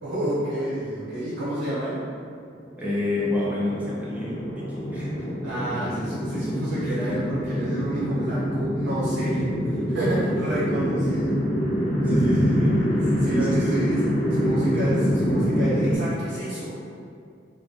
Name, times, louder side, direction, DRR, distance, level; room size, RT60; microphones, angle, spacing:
voice 1, 0.0-2.0 5.4-11.4 12.0-16.8, right 1 dB, 70° right, -10 dB, 0.7 m, -29 dB
sound 1, 2.7-16.0, equal, 70° left, 0.8 m, -25 dB
voice 2, 2.8-5.1 12.1-12.9 13.3-13.7, left 1 dB, 10° right, -7 dB, 0.4 m, -28 dB
2.5 x 2.4 x 2.5 m, 2.3 s
head